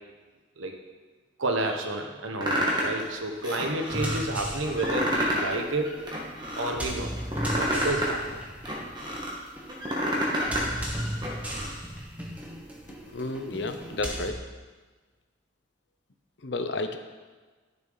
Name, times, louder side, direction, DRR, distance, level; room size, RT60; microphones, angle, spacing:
voice 1, 1.4-5.9 6.6-7.1 7.5-8.4, right 2 dB, 90° right, 3 dB, 1.2 m, -30 dB
sound 1, 2.4-3.0 3.4-4.2 4.7-5.5 5.8-6.7 7.2-9.3 9.7-10.7 11.0-11.7, equal, 20° right, 1.6 m, -29 dB
sound 2, 3.9-14.3, equal, 5° right, 1.0 m, -36 dB
voice 2, 13.1-14.4 16.4-17.0, left 2 dB, 65° left, 7 dB, 0.7 m, -31 dB
12.5 x 6.8 x 4.0 m, 1.4 s
head